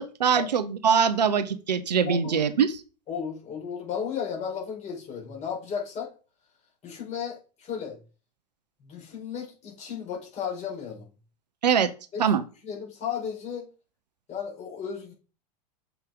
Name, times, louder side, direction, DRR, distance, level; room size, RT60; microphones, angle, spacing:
voice 1, 0.0-2.8 11.6-11.9 12.2-12.4, right 7 dB, 80° right, 12 dB, 0.8 m, -23 dB
voice 2, 2.0-2.4 3.1-6.1 6.8-8.0 8.8-11.0 12.1-13.7 14.3-15.1, left 7 dB, 35° left, -1 dB, 4.2 m, -34 dB
7.0 x 5.6 x 3.6 m, 0.34 s
hypercardioid pair, 90°, 21 cm